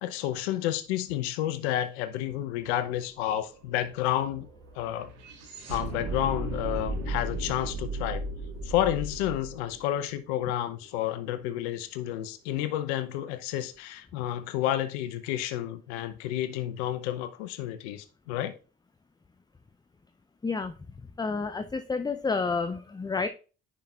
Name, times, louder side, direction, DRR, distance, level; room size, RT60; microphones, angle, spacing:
voice 1, 0.0-4.5 4.8-5.1 5.7-8.2 8.6-18.5, left 12 dB, 80° left, 0.7 m, -30 dB
sound 1, 2.3-2.4 2.6-10.9, right 2 dB, 85° right, 1.7 m, -36 dB
voice 2, 20.4-20.7 21.2-23.3, left 4 dB, 15° left, 0.5 m, -29 dB
10.5 x 5.2 x 2.4 m
hypercardioid pair, 50°, 32 cm